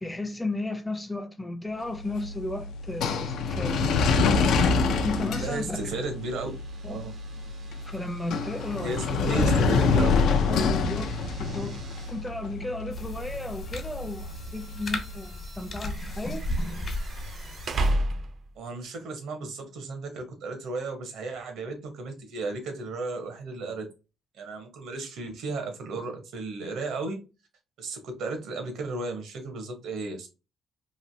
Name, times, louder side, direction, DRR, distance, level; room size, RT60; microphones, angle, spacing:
voice 1, 0.0-3.8 5.0-5.8 6.8-7.0 7.8-9.5 10.5-11.1 11.4-11.7 12.1-16.6, left 2 dB, 10° left, 0.5 m, -34 dB
sound 1, 1.9-15.0, left 4 dB, 80° left, 0.4 m, -27 dB
voice 2, 5.4-6.5 6.9-7.1 8.8-10.1 18.6-23.9 24.4-27.2 27.8-30.3, right 3 dB, 80° right, 0.9 m, -34 dB
sound 2, 5.9-18.7, right 1 dB, 55° right, 0.4 m, -37 dB
sound 3, 12.9-17.9, left 1 dB, 50° left, 1.0 m, -35 dB
3.1 x 2.6 x 2.6 m
cardioid pair, 90°, 0 cm